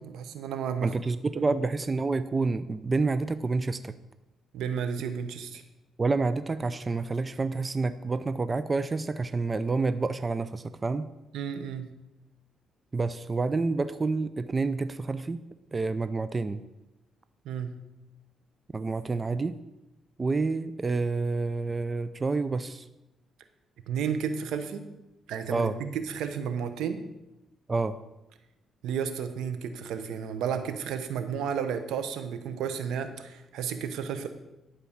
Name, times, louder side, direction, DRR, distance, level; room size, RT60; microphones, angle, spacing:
voice 1, 0.0-0.9 1.3-1.4 4.5-5.6 11.3-11.9 17.4-17.7 23.9-24.9 25.3-27.0 28.8-34.3, right 7 dB, 85° right, 9 dB, 1.0 m, -32 dB
voice 2, 0.8-3.9 6.0-11.1 12.9-15.4 15.7-16.6 18.7-19.5 20.2-22.8 25.5-25.8 27.7-28.0, right 3 dB, 30° right, 13 dB, 0.5 m, -28 dB
11.5 x 4.9 x 7.3 m, 0.97 s
cardioid pair, 90°, 0 cm